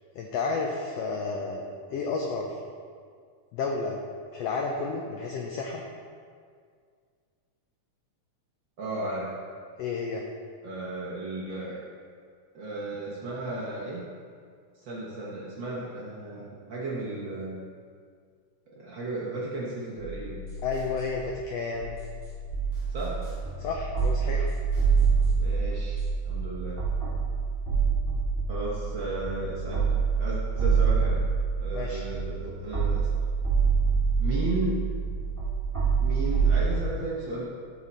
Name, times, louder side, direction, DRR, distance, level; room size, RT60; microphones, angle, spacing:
voice 1, 0.1-2.5 3.5-4.0 4.3-5.8 9.8-10.2 20.6-22.0 23.6-24.5 31.7-32.0, left 4 dB, 85° left, 1 dB, 1.4 m, -31 dB
voice 2, 8.8-9.4 10.6-11.8 12.5-14.1 14.7-17.6 18.7-20.4 22.9-23.3 25.4-26.9 28.5-31.2 31.6-33.1 34.2-34.9 36.0-37.5, right 2 dB, 70° right, -6 dB, 1.1 m, -34 dB
sound 1, 20.0-26.1, left 3 dB, 45° left, 3.1 m, -40 dB
sound 2, 22.5-36.9, right 5 dB, 15° right, 1.5 m, -26 dB
12.5 x 4.5 x 4.2 m, 2.1 s
omnidirectional pair, 3.6 m